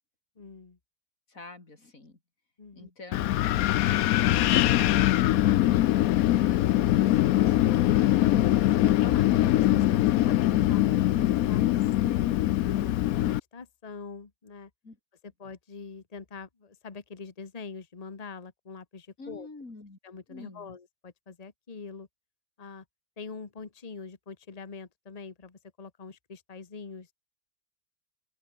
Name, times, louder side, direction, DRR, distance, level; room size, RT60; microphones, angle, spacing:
voice 1, 0.4-0.8 2.6-2.9 8.2-14.7 15.2-19.5 20.0-22.1 22.6-22.8 23.2-27.1, left 4 dB, 25° left, 1.4 m, -43 dB
voice 2, 1.3-2.2 2.7-5.1 5.5-8.4 14.8-15.0 19.2-20.0 20.3-20.7, left 3 dB, 50° left, 4.6 m, -48 dB
Wind, 3.1-13.4, left 14 dB, 70° left, 0.9 m, -23 dB
omnidirectional pair, 1.8 m